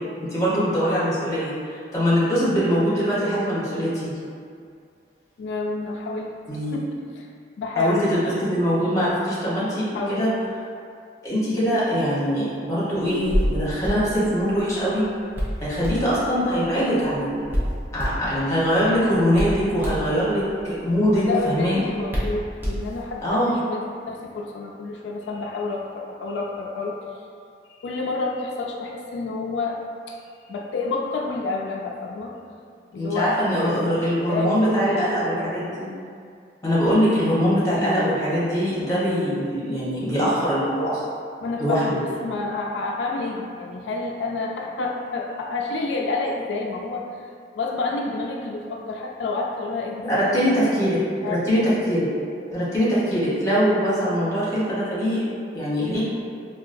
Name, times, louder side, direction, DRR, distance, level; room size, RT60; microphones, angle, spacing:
voice 1, 0.2-1.5 1.9-4.1 6.5-6.7 7.7-10.3 11.2-15.0 15.6-17.4 17.9-21.9 23.2-23.5 33.0-35.9 36.6-41.0 41.6-42.0 50.0-52.1 52.5-55.2 55.5-56.0, equal, 15° left, -10 dB, 0.9 m, -22 dB
voice 2, 5.4-6.3 6.7-7.3 7.6-8.3 9.9-10.3 21.1-27.0 27.7-29.8 30.1-30.2 30.5-32.4 32.9-34.0 34.3-35.1 35.3-35.5 41.4-50.8 51.1-51.5, left 3 dB, 90° left, 0 dB, 0.3 m, -29 dB
Hands, 13.1-23.3, equal, 10° right, 0.5 m, -30 dB
3.8 x 2.3 x 2.5 m, 2.3 s
head